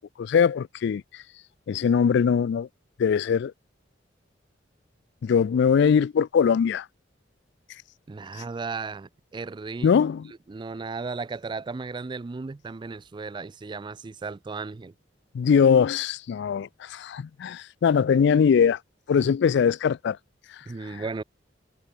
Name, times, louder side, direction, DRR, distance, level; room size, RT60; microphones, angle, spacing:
voice 1, 0.2-1.2 1.7-2.7 3.0-3.5 5.2-6.9 9.8-10.3 15.3-18.8 19.1-20.2 20.9-21.0, left 7 dB, 65° left, 0.3 m, -21 dB
voice 2, 8.1-9.9 10.5-14.9 19.2-19.3 20.7-21.2, right 4 dB, 25° right, 0.4 m, -35 dB
head